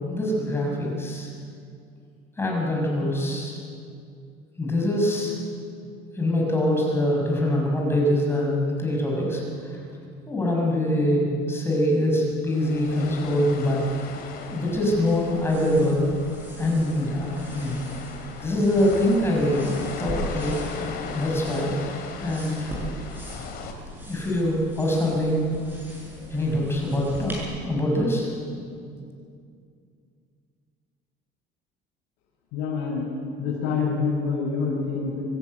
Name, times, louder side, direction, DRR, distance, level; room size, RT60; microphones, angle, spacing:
voice 1, 0.1-1.3 2.4-3.6 4.6-5.3 6.2-9.7 10.3-14.1 14.5-16.1 16.6-17.8 18.4-19.7 20.0-20.6 21.1-21.7 22.2-22.7 24.1-25.4 26.3-28.3, left 1 dB, 10° left, -2 dB, 6.1 m, -24 dB
sound 1, 12.5-23.7, left 5 dB, 55° left, 2.9 m, -38 dB
sound 2, 15.0-27.4, right 1 dB, 10° right, 7.4 m, -40 dB
voice 2, 32.5-33.1 33.4-35.2, left 5 dB, 80° left, -6 dB, 7.0 m, -26 dB
25.0 x 14.5 x 9.7 m, 2.3 s
cardioid pair, 150°, 19 cm